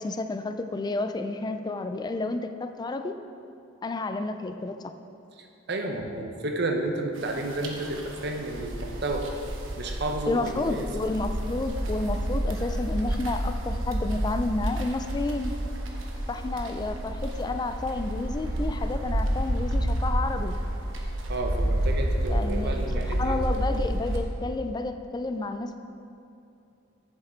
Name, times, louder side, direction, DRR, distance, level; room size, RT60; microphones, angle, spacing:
voice 1, 0.0-3.2 3.8-4.9 10.3-15.5 16.3-20.5 22.3-22.8 23.1-25.8, left 2 dB, 20° left, 9 dB, 0.3 m, -30 dB
voice 2, 5.4-9.3 9.8-10.9 21.3-23.4, right 2 dB, 55° right, 3 dB, 0.8 m, -31 dB
sound 1, 7.2-24.2, right 1 dB, 80° right, 1.0 m, -30 dB
7.5 x 7.3 x 4.4 m, 2.6 s
head